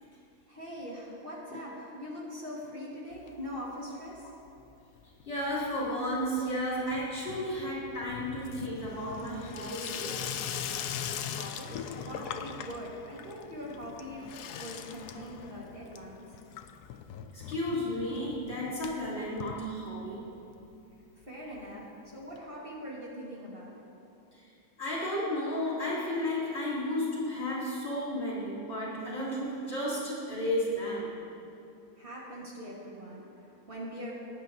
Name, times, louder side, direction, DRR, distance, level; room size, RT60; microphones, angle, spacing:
voice 1, 0.5-4.3 10.9-16.4 21.2-23.7 32.0-34.1, equal, 35° right, -6 dB, 1.8 m, -42 dB
Water tap faucet / Sink (filling or washing), 3.1-4.7 5.0-20.3 20.6-20.7 20.9-21.0 21.2-21.3 22.4-22.5, left 8 dB, 90° left, 1.2 m, -41 dB
voice 2, 5.2-10.2 17.3-20.3 24.3-24.5 24.8-31.2, left 1 dB, 45° left, -7 dB, 3.5 m, -33 dB
19.0 x 9.6 x 2.7 m, 2.7 s
omnidirectional pair, 1.6 m